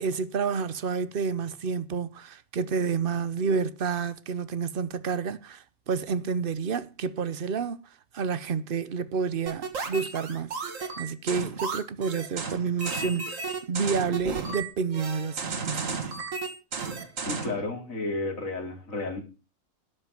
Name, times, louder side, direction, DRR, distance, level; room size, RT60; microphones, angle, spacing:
voice 1, 0.0-7.8 8.1-16.1, right 5 dB, 45° right, 0.9 m, -30 dB
sound 1, 9.5-17.6, right 4 dB, 65° right, 2.1 m, -33 dB
voice 2, 17.2-19.2, left 3 dB, 70° left, 3.3 m, -32 dB
12.0 x 5.6 x 8.9 m
omnidirectional pair, 1.5 m